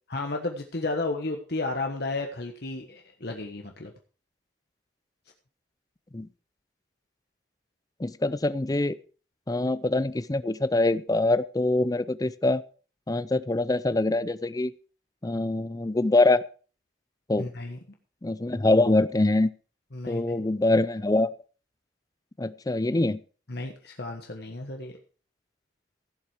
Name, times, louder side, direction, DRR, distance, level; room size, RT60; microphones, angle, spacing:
voice 1, 0.1-3.9 17.4-17.8 19.9-20.3 23.5-25.0, left 2 dB, 55° left, 3 dB, 1.3 m, -33 dB
voice 2, 8.0-9.0 9.5-12.6 13.1-14.7 15.2-16.4 17.3-17.5 18.2-19.5 20.1-21.3 22.4-23.2, left 2 dB, 20° left, 17 dB, 0.5 m, -24 dB
16.0 x 7.6 x 4.9 m, 0.38 s
head